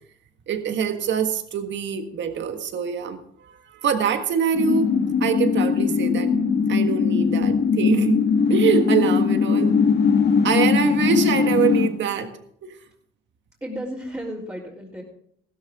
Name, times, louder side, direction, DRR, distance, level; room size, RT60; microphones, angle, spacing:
voice 1, 0.5-3.2 3.5-4.9 5.2-6.3 6.7-9.7 10.4-12.3 12.6-12.7, right 6 dB, 70° right, 7 dB, 1.6 m, -24 dB
sound 1, 4.5-11.9, left 6 dB, 60° left, 1.8 m, -20 dB
voice 2, 13.6-15.0, equal, 15° right, -7 dB, 3.7 m, -33 dB
16.0 x 13.0 x 3.7 m, 0.66 s
cardioid pair, 90°, 20 cm